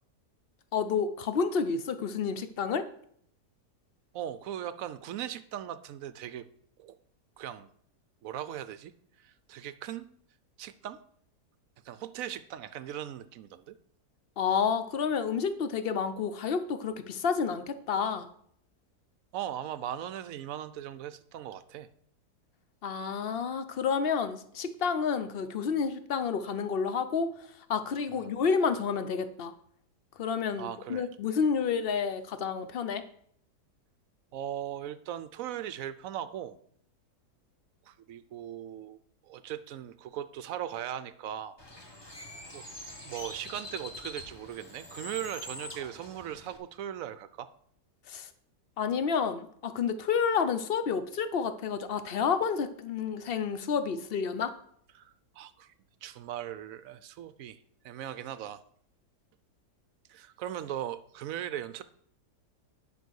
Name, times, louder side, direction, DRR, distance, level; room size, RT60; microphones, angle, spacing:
voice 1, 0.7-2.8 14.4-18.3 22.8-27.3 27.7-29.5 30.2-33.0 48.1-48.3 48.8-54.5, left 6 dB, 55° left, 11 dB, 0.6 m, -30 dB
voice 2, 4.1-6.4 6.8-7.0 7.4-7.7 8.2-8.9 9.2-10.1 10.6-11.0 11.8-13.8 19.3-21.9 28.1-28.3 30.6-31.1 34.3-36.6 37.9-41.6 42.5-42.6 43.0-47.5 54.9-55.7 56.0-58.6 60.1-61.8, right 11 dB, 65° right, 14 dB, 0.9 m, -39 dB
Bird, 41.6-46.6, left 1 dB, 15° left, 1.1 m, -45 dB
9.4 x 5.3 x 6.3 m, 0.65 s
omnidirectional pair, 1.8 m